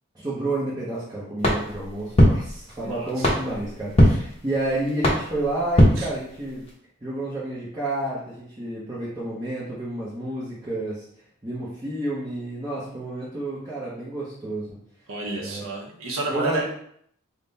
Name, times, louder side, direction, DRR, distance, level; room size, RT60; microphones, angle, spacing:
voice 1, 0.1-6.7 7.0-11.1 11.4-14.8 15.4-15.6 16.3-16.7, right 1 dB, 20° right, -8 dB, 0.7 m, -30 dB
sound 1, 1.4-6.7, equal, 30° left, 0.8 m, -22 dB
voice 2, 2.8-3.3 6.0-6.1 15.1-16.7, right 2 dB, 90° right, -2 dB, 0.8 m, -30 dB
3.6 x 2.1 x 3.9 m, 0.67 s
head